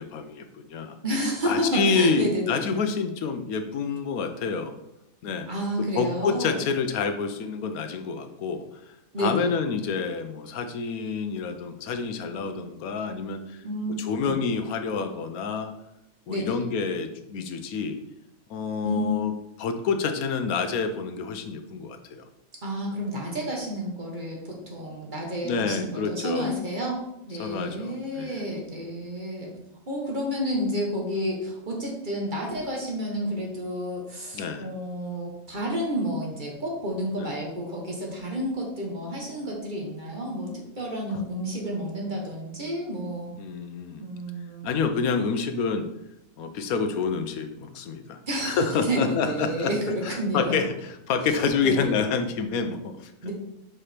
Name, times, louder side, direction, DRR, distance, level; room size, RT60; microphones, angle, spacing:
voice 1, 0.0-1.0 1.4-4.7 5.2-5.5 5.9-8.6 9.2-13.6 14.0-15.7 16.3-18.0 18.5-19.3 19.6-22.3 25.4-26.5 27.4-28.5 34.3-34.7 37.2-37.3 41.1-41.2 43.4-44.1 44.6-45.9 46.4-49.7 50.0-50.7 51.1-53.1, left 5 dB, 90° left, 8 dB, 1.2 m, -28 dB
voice 2, 1.0-2.6 5.5-6.6 9.1-9.5 13.6-14.4 16.3-16.6 18.8-19.2 22.6-27.0 27.3-29.5 29.9-43.3 44.0-44.8 48.3-48.6 48.9-50.5 51.6-51.9 53.2-53.3, equal, 35° right, -1 dB, 1.3 m, -30 dB
5.1 x 4.9 x 4.3 m, 0.85 s
omnidirectional pair, 1.5 m